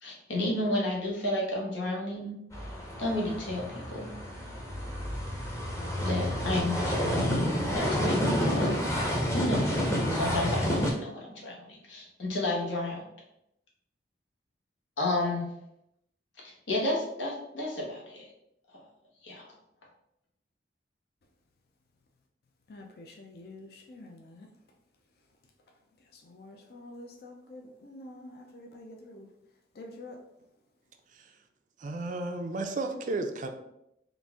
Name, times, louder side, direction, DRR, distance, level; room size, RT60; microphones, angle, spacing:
voice 1, 0.0-2.4 3.0-4.1 6.0-8.8 9.3-13.1 15.0-15.4 16.4-18.3 19.2-19.5, left 2 dB, 90° left, -2 dB, 1.2 m, -32 dB
sound 1, 2.5-10.9, equal, 15° left, 0.7 m, -29 dB
voice 2, 22.7-24.5 26.1-29.3 29.7-30.2, left 2 dB, 55° left, 2 dB, 0.5 m, -47 dB
voice 3, 31.8-33.5, right 2 dB, 45° right, 6 dB, 0.4 m, -33 dB
3.9 x 2.5 x 3.5 m, 0.82 s
head